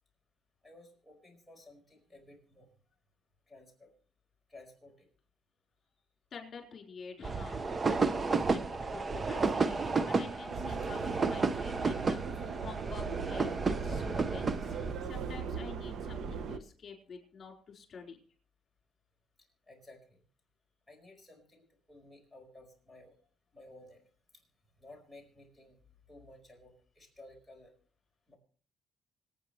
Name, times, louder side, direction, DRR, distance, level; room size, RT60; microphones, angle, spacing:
voice 1, 0.6-2.7 3.5-3.9 4.5-5.1 19.7-20.2 20.9-23.2 23.5-24.0 24.3-24.4 24.8-25.8 26.1-27.8 28.3-28.4, left 2 dB, ahead, -1 dB, 4.8 m, -55 dB
voice 2, 6.3-14.7 15.0-18.2, left 5 dB, 40° left, 2 dB, 4.3 m, -49 dB
sound 1, 7.2-14.9, right 4 dB, 30° right, 0.7 m, -32 dB
Subway metro underground, 10.5-16.6, right 6 dB, 65° right, 1.0 m, -39 dB
26.0 x 9.2 x 3.2 m, 0.43 s
cardioid pair, 120°, 0 cm